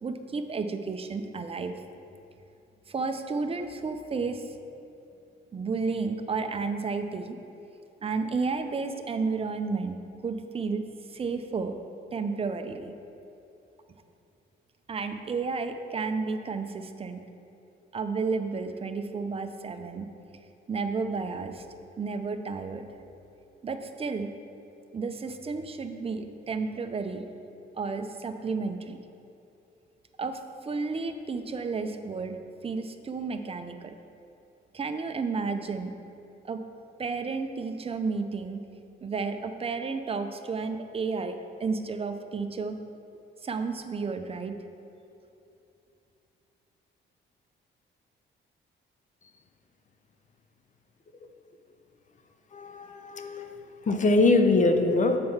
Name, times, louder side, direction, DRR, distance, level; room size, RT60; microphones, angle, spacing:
voice 1, 0.0-1.7 2.9-4.6 5.5-7.4 8.0-10.8 11.1-11.8 12.1-12.9 14.9-17.2 17.9-20.1 20.7-21.7 22.0-22.9 23.6-24.3 24.9-27.2 27.7-29.0 30.2-33.9 34.7-35.9 36.4-36.6 37.0-38.6 39.0-42.8 43.4-44.6, right 4 dB, 30° right, 7 dB, 0.6 m, -32 dB
voice 2, 52.5-53.5 53.9-55.2, left 2 dB, 40° left, 6 dB, 0.7 m, -22 dB
7.6 x 4.4 x 5.6 m, 2.8 s
cardioid pair, 90°, 20 cm